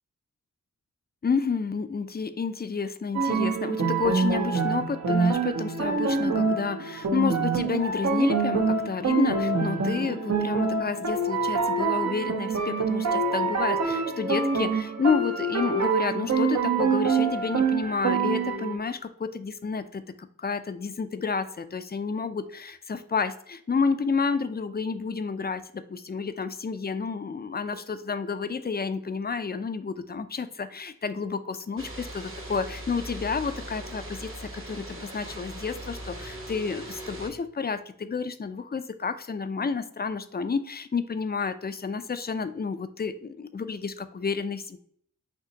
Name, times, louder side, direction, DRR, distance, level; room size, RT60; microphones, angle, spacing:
voice 1, 1.2-31.8 32.1-44.8, left 5 dB, 30° left, 11 dB, 0.4 m, -30 dB
sound 1, 3.1-18.8, right 4 dB, 60° right, 0.7 m, -26 dB
sound 2, 31.8-37.3, right 1 dB, 40° right, 1.1 m, -39 dB
5.7 x 2.9 x 2.8 m, 0.66 s
wide cardioid pair, 60°, 31 cm